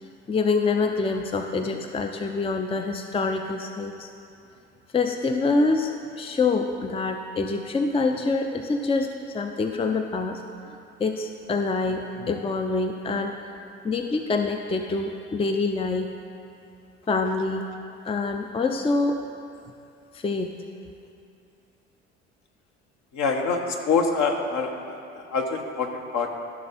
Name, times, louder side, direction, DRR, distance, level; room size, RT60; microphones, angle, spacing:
voice 1, 0.0-4.1 4.9-10.4 11.0-13.4 13.8-16.1 17.1-17.7 18.0-19.2 20.1-20.6, left 3 dB, 15° left, 5 dB, 0.6 m, -26 dB
voice 2, 23.1-23.6 23.8-26.3, left 5 dB, 55° left, 3 dB, 1.3 m, -25 dB
14.0 x 6.0 x 4.2 m, 2.6 s
hypercardioid pair, 60°, 34 cm